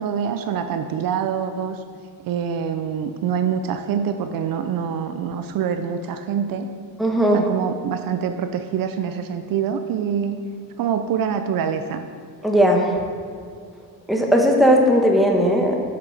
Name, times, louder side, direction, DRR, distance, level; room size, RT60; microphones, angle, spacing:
voice 1, 0.0-1.8 2.2-6.7 7.3-10.4 10.8-12.0, right 7 dB, 60° right, 8 dB, 0.6 m, -25 dB
voice 2, 7.0-7.4 12.4-12.9 14.1-15.8, equal, ahead, 0 dB, 1.1 m, -17 dB
9.4 x 6.0 x 5.9 m, 2.2 s
cardioid pair, 135°, 40 cm